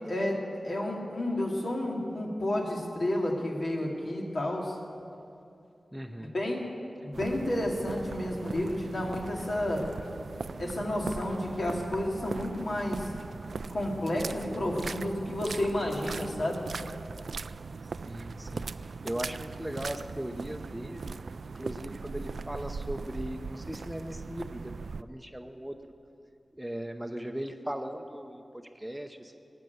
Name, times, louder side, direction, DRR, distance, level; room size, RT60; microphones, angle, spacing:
voice 1, 0.1-4.8 6.2-6.7 7.0-9.8 10.6-13.1 13.7-16.6, left 1 dB, 65° left, -1 dB, 2.5 m, -31 dB
voice 2, 5.9-6.3 18.0-21.2 21.5-25.8 26.5-29.4, equal, 5° right, 6 dB, 0.7 m, -38 dB
sound 1, 7.1-25.0, right 4 dB, 80° right, 0.3 m, -40 dB
18.0 x 7.5 x 9.4 m, 2.6 s
wide cardioid pair, 90°, 0 cm